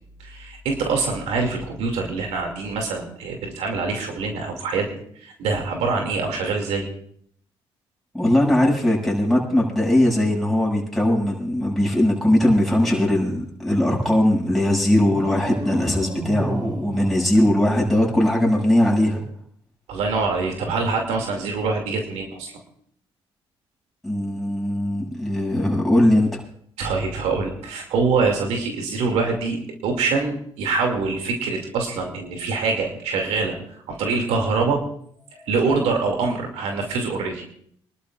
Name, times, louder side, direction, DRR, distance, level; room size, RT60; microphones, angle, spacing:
voice 1, 0.2-4.9 5.2-6.9 19.9-22.5 26.8-29.6 29.8-34.8 35.4-37.4, right 4 dB, 85° right, 2 dB, 2.5 m, -24 dB
voice 2, 8.1-19.2 24.0-26.4, left 1 dB, ahead, -3 dB, 6.9 m, -20 dB
sound 1, 15.1-18.2, right 2 dB, 45° right, 3.2 m, -34 dB
28.5 x 12.0 x 2.5 m, 0.64 s
cardioid pair, 80°, 11 cm